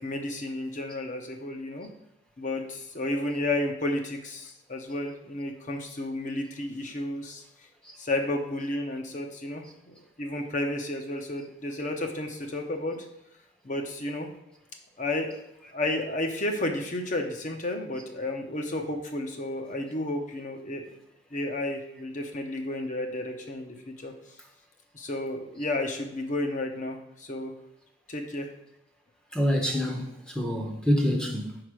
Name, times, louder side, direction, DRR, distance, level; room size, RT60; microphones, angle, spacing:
voice 1, 0.0-1.9 2.4-7.4 8.0-13.1 13.6-14.3 15.0-15.3 15.7-20.8 21.3-24.1 24.9-27.5 28.1-28.5, left 1 dB, 40° left, 3 dB, 0.8 m, -32 dB
voice 2, 29.3-31.6, equal, 5° left, 2 dB, 0.8 m, -27 dB
4.9 x 4.6 x 6.1 m, 0.83 s
head